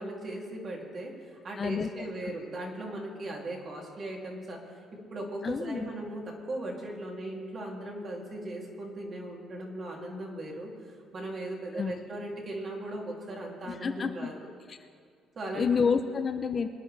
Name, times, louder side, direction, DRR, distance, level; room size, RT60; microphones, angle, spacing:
voice 1, 0.0-14.3 15.3-15.8, right 1 dB, 35° right, -1 dB, 2.5 m, -38 dB
voice 2, 1.6-2.3 5.4-5.9 11.7-11.9 13.7-14.3 14.7-14.8 15.5-16.7, left 5 dB, 30° left, 7 dB, 0.5 m, -29 dB
24.0 x 10.5 x 3.3 m, 2.1 s
cardioid pair, 150°, 0 cm